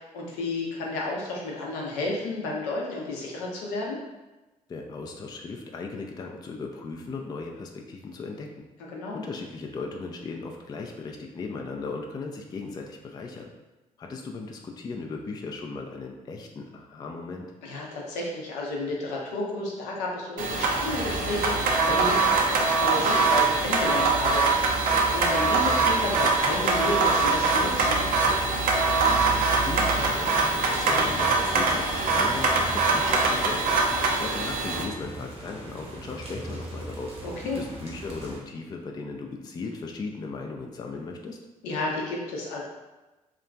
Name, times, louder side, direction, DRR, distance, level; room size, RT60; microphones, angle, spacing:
voice 1, 0.0-4.0 8.9-9.2 17.6-28.0 37.2-37.6 41.6-42.6, left 2 dB, 70° left, -2 dB, 0.6 m, -32 dB
voice 2, 4.7-8.5 9.1-13.5 14.0-17.5 29.1-37.2 37.5-41.4, left 4 dB, 20° left, 1 dB, 0.3 m, -37 dB
sound 1, 20.4-34.8, right 3 dB, 50° right, 0.5 m, -23 dB
sound 2, 20.5-38.4, right 3 dB, 35° right, 0.8 m, -38 dB
2.8 x 2.4 x 2.2 m, 1.1 s
figure-of-eight pair, 45°, 18 cm